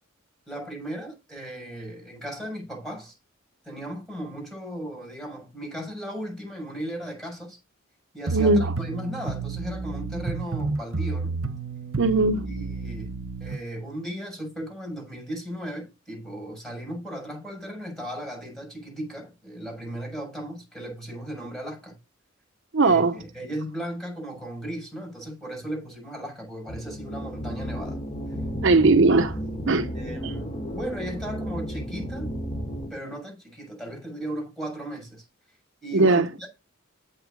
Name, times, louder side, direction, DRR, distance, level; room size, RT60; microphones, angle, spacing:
voice 1, 0.5-3.1 3.6-7.6 8.1-11.3 12.4-13.1 13.4-22.0 22.8-28.0 29.9-32.3 32.9-35.2 35.8-36.5, right 1 dB, ahead, 6.8 m, -36 dB
voice 2, 8.3-8.7 12.0-12.5 22.7-23.2 28.6-29.4 29.7-29.9 35.9-36.3, right 3 dB, 65° right, 0.8 m, -19 dB
sound 1, 8.3-13.6, right 4 dB, 80° right, 1.1 m, -31 dB
sound 2, 26.7-32.9, equal, 35° left, 2.7 m, -33 dB
8.1 x 6.6 x 5.2 m
head